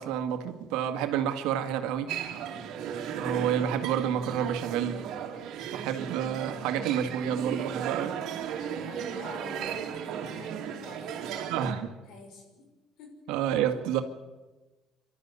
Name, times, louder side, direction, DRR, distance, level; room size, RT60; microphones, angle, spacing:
voice 1, 0.0-2.1 3.2-5.0 5.7-8.2 11.5-11.9 13.3-14.0, right 9 dB, 90° right, 2.0 m, -29 dB
sound 1, 2.1-11.7, right 8 dB, 70° right, 2.6 m, -36 dB
voice 2, 2.5-2.8 8.6-12.7 13.0-13.1, left 2 dB, 75° left, 5.9 m, -47 dB
26.0 x 13.0 x 9.6 m
cardioid pair, 120°, 0 cm